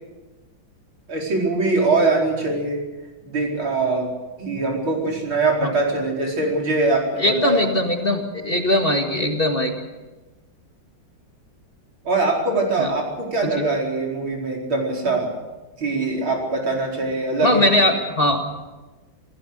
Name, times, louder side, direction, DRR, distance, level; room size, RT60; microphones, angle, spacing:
voice 1, 1.1-2.8 3.3-4.1 4.4-7.7 12.1-15.3 15.8-17.9, right 3 dB, 80° right, -1 dB, 5.4 m, -22 dB
voice 2, 7.2-9.7 12.8-12.9 13.4-13.7 17.4-18.4, left 1 dB, 30° left, 3 dB, 2.1 m, -20 dB
28.0 x 16.0 x 6.7 m, 1.1 s
omnidirectional pair, 2.2 m